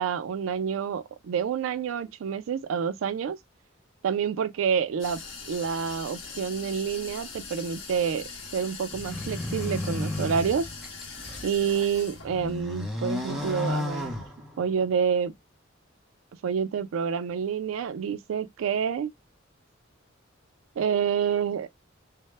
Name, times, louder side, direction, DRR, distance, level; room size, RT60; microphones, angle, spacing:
voice 1, 0.0-3.4 4.0-5.2 5.5-10.7 11.4-14.1 14.6-15.3 16.4-19.1 20.8-21.7, right 7 dB, 80° right, 0.3 m, -28 dB
sound 1, 5.0-12.6, left 4 dB, 80° left, 0.7 m, -42 dB
sound 2, 8.9-11.5 12.0-14.8, left 2 dB, ahead, 0.6 m, -33 dB
2.0 x 2.0 x 3.1 m
head